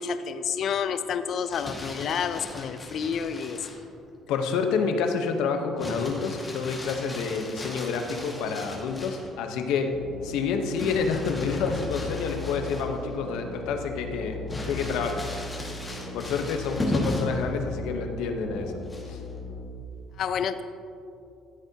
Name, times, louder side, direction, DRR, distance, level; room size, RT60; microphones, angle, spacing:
voice 1, 0.0-3.7 20.2-20.6, left 7 dB, 55° left, 11 dB, 0.5 m, -29 dB
Crumpling crinkling, 1.3-3.8 5.8-9.3 10.8-13.1 13.5-13.6 14.5-17.4 18.8-19.3, left 1 dB, 15° left, 1.8 m, -36 dB
voice 2, 4.3-9.9 10.2-14.4 14.6-15.2 15.6-15.7 16.1-18.7 19.1-19.2, left 5 dB, 85° left, 5 dB, 0.9 m, -28 dB
sound 1, 9.9-19.6, left 3 dB, 40° left, 2.1 m, -38 dB
14.0 x 8.0 x 2.9 m, 2.6 s
cardioid pair, 125°, 0 cm